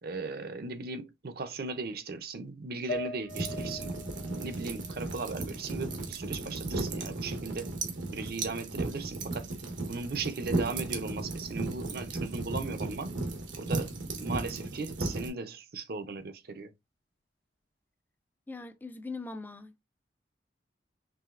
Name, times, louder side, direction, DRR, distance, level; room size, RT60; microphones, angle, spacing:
voice 1, 0.0-7.7 8.1-9.5 9.8-13.1 13.6-16.7, right 4 dB, 55° right, 0.6 m, -38 dB
sound 1, 2.9-6.3 6.7-7.7, left 1 dB, 75° left, 0.8 m, -43 dB
sound 2, 3.3-15.3, right 2 dB, 90° right, 1.1 m, -35 dB
voice 2, 18.5-19.8, left 3 dB, 10° left, 0.4 m, -41 dB
4.8 x 3.2 x 2.5 m
head